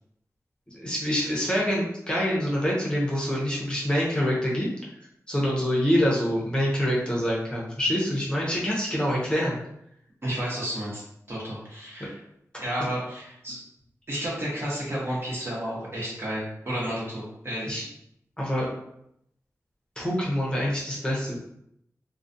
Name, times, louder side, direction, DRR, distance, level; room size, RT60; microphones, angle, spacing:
voice 1, 0.7-4.7 5.3-9.6 17.7-17.8 18.4-18.7 20.0-21.4, equal, 15° left, -5 dB, 0.7 m, -26 dB
voice 2, 10.2-11.0 11.3-12.2 12.6-13.6 14.1-17.9, equal, 45° right, -6 dB, 1.0 m, -31 dB
2.4 x 2.2 x 2.6 m, 0.75 s
wide cardioid pair, 85°, 6 cm